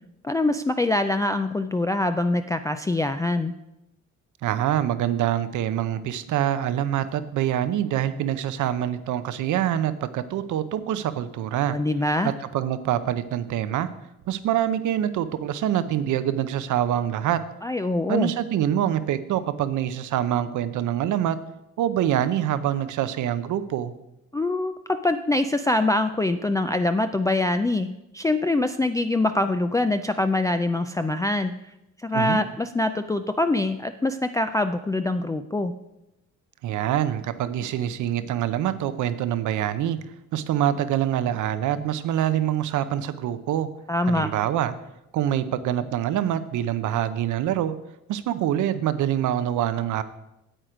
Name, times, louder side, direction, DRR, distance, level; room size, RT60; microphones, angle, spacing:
voice 1, 0.2-3.5 11.7-12.3 17.6-18.3 24.3-31.5 32.0-35.7 43.9-44.3, left 2 dB, 10° left, 7 dB, 0.4 m, -24 dB
voice 2, 4.4-11.8 12.2-13.9 14.3-17.4 18.1-21.4 21.8-23.9 32.1-32.4 36.6-40.0 40.3-43.7 44.0-44.7 45.1-47.7 48.1-50.0, right 11 dB, 75° right, 13 dB, 0.7 m, -25 dB
9.0 x 7.8 x 5.0 m, 0.90 s
cardioid pair, 90°, 30 cm